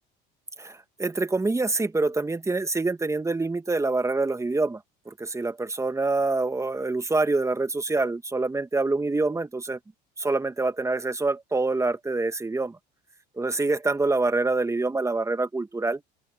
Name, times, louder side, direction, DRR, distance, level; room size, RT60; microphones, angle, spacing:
voice 1, 0.6-4.8 5.1-9.8 10.2-12.8 13.4-16.0, right 3 dB, 15° right, 1.6 m, -26 dB
open air
supercardioid pair, 85°, 21 cm